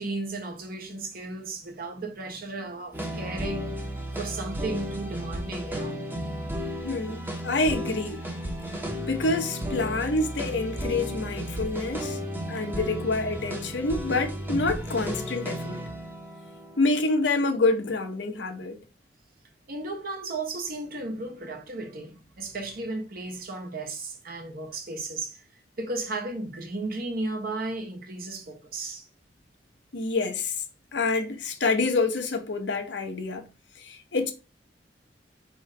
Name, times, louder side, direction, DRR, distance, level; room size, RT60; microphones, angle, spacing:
voice 1, 0.0-3.8 4.2-6.0 19.7-25.4 25.8-29.1, right 2 dB, 55° right, 1.0 m, -34 dB
sound 1, 2.9-18.2, equal, 10° right, 0.8 m, -34 dB
voice 2, 6.8-8.2 9.1-12.2 12.5-15.8 16.8-18.8 29.9-30.6 30.9-33.5 33.8-34.3, left 3 dB, 85° left, 0.9 m, -27 dB
4.9 x 3.0 x 3.2 m
head